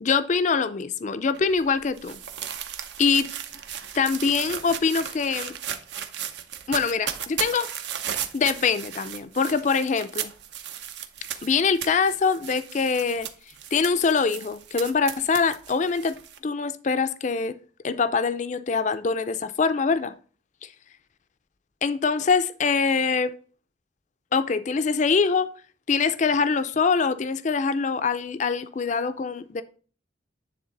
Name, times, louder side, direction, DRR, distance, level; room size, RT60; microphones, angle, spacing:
voice 1, 0.0-2.2 3.0-3.3 3.9-5.5 6.7-7.7 8.1-10.3 11.4-13.3 13.7-16.2 16.4-17.5 17.8-20.1 20.6-20.7 21.8-23.3 24.3-25.5 25.9-29.6, left 5 dB, 40° left, 0.4 m, -24 dB
sound 1, 1.3-16.4, right 9 dB, 65° right, 0.7 m, -36 dB
9.5 x 3.6 x 3.9 m
head